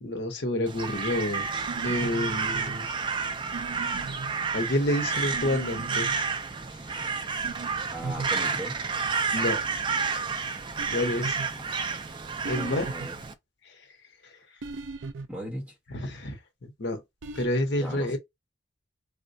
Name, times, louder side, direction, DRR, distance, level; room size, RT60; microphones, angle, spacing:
voice 1, 0.0-1.5 1.8-2.9 4.5-6.1 9.3-9.6 10.9-11.4 12.4-12.8 13.6-13.8 14.2-14.3 15.9-17.0 17.3-18.2, left 1 dB, 65° left, 0.7 m, -29 dB
Crow, 0.7-13.3, right 5 dB, 25° right, 0.3 m, -30 dB
sound 1, 1.7-2.8 3.5-4.3 5.3-6.2 7.4-7.7 8.0-8.3 10.8-11.5 12.5-13.1 14.6-15.3 17.2-17.5, right 3 dB, 85° right, 0.5 m, -37 dB
voice 2, 7.9-8.8 12.6-13.2 15.3-15.7 17.8-18.2, right 1 dB, 10° right, 1.2 m, -37 dB
3.5 x 2.2 x 2.6 m
head